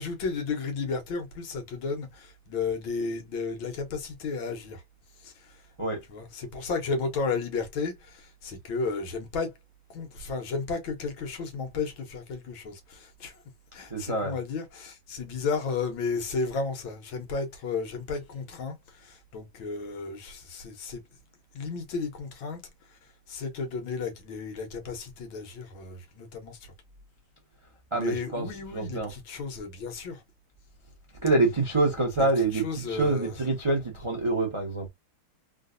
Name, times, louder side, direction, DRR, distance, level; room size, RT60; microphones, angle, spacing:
voice 1, 0.0-4.8 5.2-5.6 6.1-9.5 9.9-13.3 13.7-21.0 21.5-22.6 23.3-26.7 28.0-30.2 32.2-32.3 32.6-33.3, left 4 dB, 75° left, 1.7 m, -33 dB
voice 2, 13.9-14.4 27.9-29.1 31.2-34.9, right 2 dB, 30° right, 0.5 m, -26 dB
3.8 x 2.4 x 2.5 m
omnidirectional pair, 2.2 m